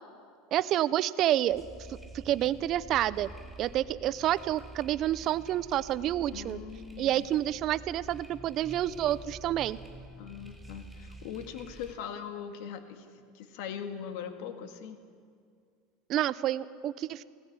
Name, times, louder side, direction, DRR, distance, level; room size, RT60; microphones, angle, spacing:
voice 1, 0.5-3.3 3.6-6.6 7.0-9.8 16.1-17.2, right 12 dB, 50° right, 17 dB, 0.7 m, -29 dB
sound 1, 1.5-11.9, right 2 dB, ahead, 4.3 m, -48 dB
voice 2, 6.3-7.3 10.2-15.0, left 8 dB, 70° left, 7 dB, 1.8 m, -41 dB
18.0 x 14.5 x 9.7 m, 2.2 s
supercardioid pair, 105°, 0 cm